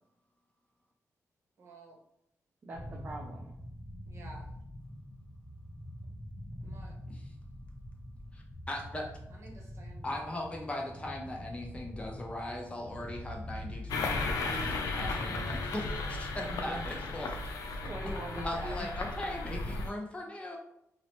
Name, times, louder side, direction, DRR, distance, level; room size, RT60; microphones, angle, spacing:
voice 1, 1.6-2.0 4.1-4.5 6.6-7.0 9.3-10.4, right 2 dB, 50° right, -1 dB, 0.8 m, -52 dB
voice 2, 2.6-3.6 16.5-17.1 17.7-18.9, right 2 dB, 35° right, 0 dB, 0.4 m, -42 dB
sound 1, 2.7-15.6, equal, 10° right, 0.9 m, -44 dB
voice 3, 8.3-9.1 10.0-17.3 18.4-20.6, left 1 dB, 20° left, 0 dB, 0.5 m, -39 dB
sound 2, 13.9-19.9, left 3 dB, 90° left, 0.4 m, -35 dB
2.9 x 2.0 x 2.9 m, 0.78 s
cardioid pair, 105°, 6 cm